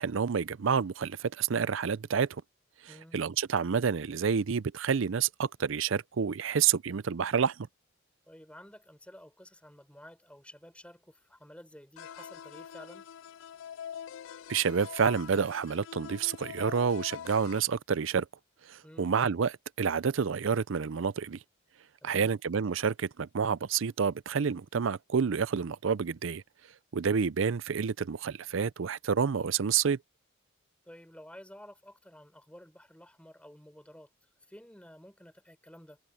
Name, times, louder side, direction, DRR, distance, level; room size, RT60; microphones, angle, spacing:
voice 1, 0.0-2.3 3.1-7.7 14.5-18.3 18.7-21.4 22.0-26.4 26.9-30.0, right 6 dB, 70° right, 0.5 m, -29 dB
voice 2, 8.3-13.1 18.8-19.1 22.0-22.3 30.9-34.1 34.4-36.0, equal, 5° left, 5.1 m, -52 dB
sound 1, 12.0-17.6, left 8 dB, 65° left, 0.3 m, -44 dB
head